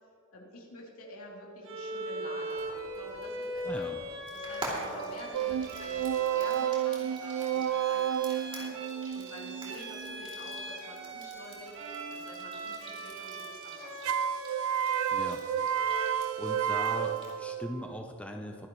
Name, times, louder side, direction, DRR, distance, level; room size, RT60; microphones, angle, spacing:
voice 1, 0.3-3.8 4.3-11.8 12.1-14.1, left 1 dB, 75° left, -3 dB, 3.0 m, -47 dB
Bowed string instrument, 1.6-17.4, right 2 dB, 60° right, 1.9 m, -40 dB
Frying (food), 2.5-17.3, right 1 dB, 25° right, 2.8 m, -47 dB
voice 2, 3.6-4.0 15.1-15.4 16.4-18.7, left 1 dB, 5° left, 2 dB, 0.6 m, -39 dB
sound 1, 5.3-10.7 14.0-18.0, right 9 dB, 80° right, 0.3 m, -31 dB
23.0 x 10.5 x 3.1 m, 2.6 s
head